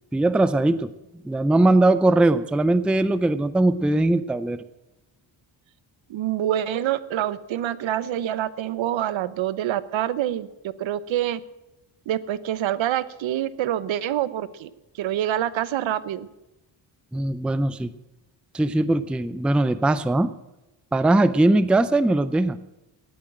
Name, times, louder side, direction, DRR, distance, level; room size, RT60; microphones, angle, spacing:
voice 1, 0.1-0.9 1.2-4.6 17.1-17.9 18.5-20.3 20.9-22.6, right 2 dB, ahead, 14 dB, 0.4 m, -20 dB
voice 2, 6.1-10.5 10.8-11.4 12.1-14.7 15.0-16.3, right 11 dB, 75° right, 16 dB, 0.9 m, -26 dB
17.5 x 8.8 x 7.5 m, 0.98 s
cardioid pair, 145°, 47 cm